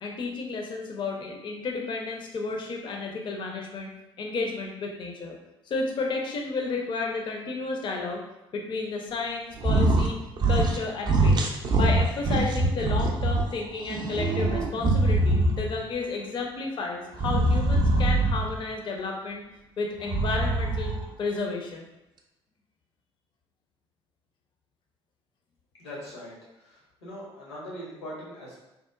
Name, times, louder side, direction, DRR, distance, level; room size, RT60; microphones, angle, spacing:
voice 1, 0.0-3.9 4.2-5.4 5.7-8.2 8.5-10.2 10.5-11.4 11.7-19.4 19.8-20.9 21.2-21.9, left 3 dB, 35° left, 1 dB, 0.4 m, -32 dB
sound 1, 9.6-10.1 10.4-10.8 11.1-13.4 13.9-15.8 17.1-18.6 20.0-21.0, right 2 dB, 30° right, 0.4 m, -23 dB
voice 2, 25.8-26.4 27.0-28.6, equal, 80° left, -6 dB, 0.8 m, -40 dB
2.8 x 2.0 x 2.3 m, 0.92 s
figure-of-eight pair, 50°, 14 cm